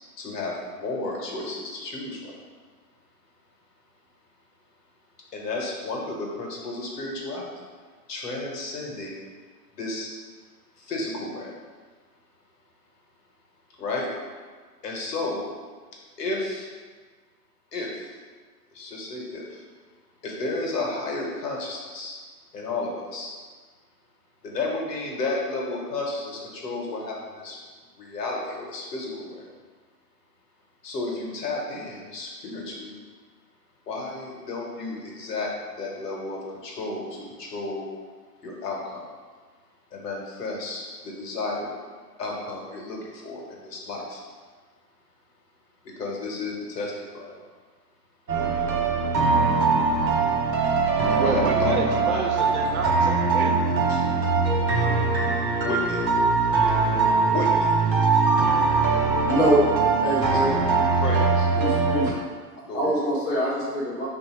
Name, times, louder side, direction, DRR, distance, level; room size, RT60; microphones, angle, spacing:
voice 1, 0.2-2.3 5.3-7.5 8.1-9.2 9.8-10.1 10.9-11.5 13.8-14.1 14.8-15.4 16.2-16.7 17.7-17.9 18.7-19.4 20.2-22.1 22.5-23.3 24.4-27.5 28.0-29.4 30.8-32.9 33.9-35.5 35.8-37.1 37.4-37.9 38.4-39.0 39.9-40.8 41.2-41.7 42.2-43.0 43.2-44.2 46.0-47.4 51.2-52.6 53.9-54.0 55.6-56.0 57.3-57.7 60.2-60.6 60.9-61.5 62.7-63.0, left 2 dB, 70° left, -2 dB, 1.2 m, -32 dB
sound 1, 48.3-62.1, right 4 dB, 85° right, 0.9 m, -22 dB
voice 2, 51.1-53.6, right 5 dB, 60° right, 3 dB, 0.6 m, -30 dB
voice 3, 58.8-59.6 60.0-60.5 61.6-62.2 62.7-64.0, equal, 10° left, -9 dB, 0.4 m, -24 dB
3.4 x 2.7 x 4.3 m, 1.5 s
figure-of-eight pair, 105°, 50 cm